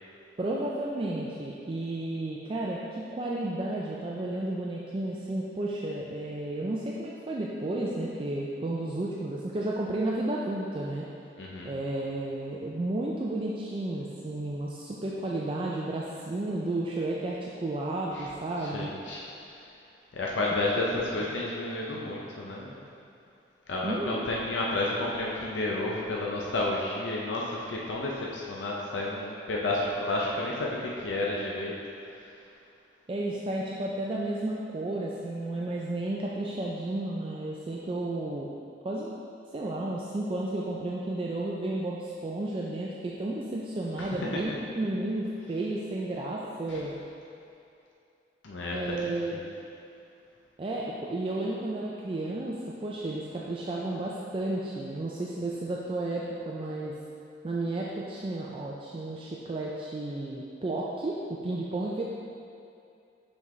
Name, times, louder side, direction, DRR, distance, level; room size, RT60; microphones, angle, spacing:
voice 1, 0.4-11.1 11.6-18.9 20.8-21.1 21.4-21.5 23.8-24.3 33.1-38.5 38.8-39.1 39.5-46.9 48.7-49.4 50.6-57.0 57.4-62.0, right 2 dB, 30° right, -4 dB, 0.4 m, -32 dB
voice 2, 11.4-11.7 18.1-18.3 18.6-19.3 20.1-22.7 23.7-31.7 44.0-44.1 44.5-44.6 46.7-46.8 48.4-49.4, left 2 dB, 80° left, -4 dB, 0.6 m, -31 dB
5.9 x 5.2 x 3.2 m, 2.6 s
head